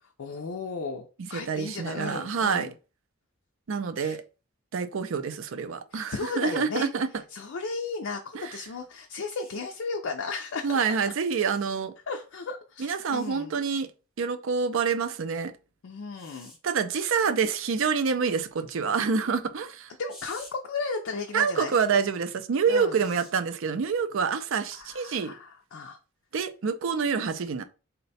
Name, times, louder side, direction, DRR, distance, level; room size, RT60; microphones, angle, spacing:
voice 1, 0.0-2.7 4.0-4.2 5.9-6.9 7.3-11.0 12.1-13.6 15.8-16.5 20.0-21.7 22.7-23.0 24.7-26.0, left 4 dB, 60° left, 0.4 m, -35 dB
voice 2, 1.2-2.7 3.7-4.2 4.7-7.1 8.3-8.5 10.6-11.9 12.8-13.9 14.2-15.5 16.6-19.9 21.3-25.3 26.3-27.6, right 5 dB, 60° right, 0.4 m, -27 dB
sound 1, 9.3-9.6 11.4-11.8 13.1-13.3 16.1-16.6 20.1-20.5 21.7-21.9 22.9-23.3 24.8-25.0, left 1 dB, 5° right, 0.9 m, -49 dB
3.9 x 2.2 x 4.0 m
head